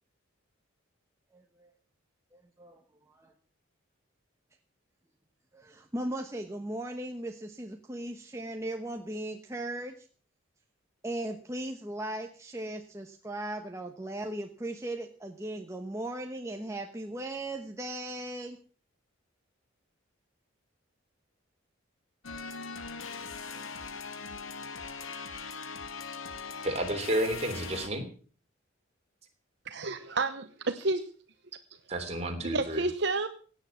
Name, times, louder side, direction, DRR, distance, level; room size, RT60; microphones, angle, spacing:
voice 1, 1.3-1.7 2.3-3.3 5.5-10.1 11.0-18.6, right 1 dB, 15° right, 3 dB, 1.1 m, -38 dB
sound 1, 22.2-27.9, left 5 dB, 80° left, 1.6 m, -40 dB
voice 2, 26.6-28.0 31.9-32.8, right 1 dB, 30° right, 4 dB, 3.3 m, -31 dB
voice 3, 29.6-31.1 32.4-33.3, right 3 dB, 55° right, 9 dB, 0.9 m, -30 dB
17.0 x 9.6 x 7.2 m, 0.42 s
head